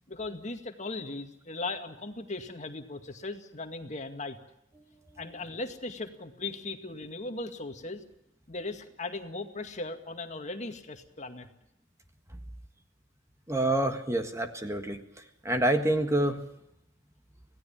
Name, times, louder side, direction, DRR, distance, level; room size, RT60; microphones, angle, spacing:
voice 1, 0.1-4.4 5.2-8.0 8.5-11.5, left 2 dB, 40° left, 6 dB, 2.1 m, -38 dB
voice 2, 13.5-15.0 15.4-16.4, right 1 dB, 15° right, 6 dB, 1.6 m, -27 dB
26.0 x 17.5 x 7.3 m, 0.81 s
head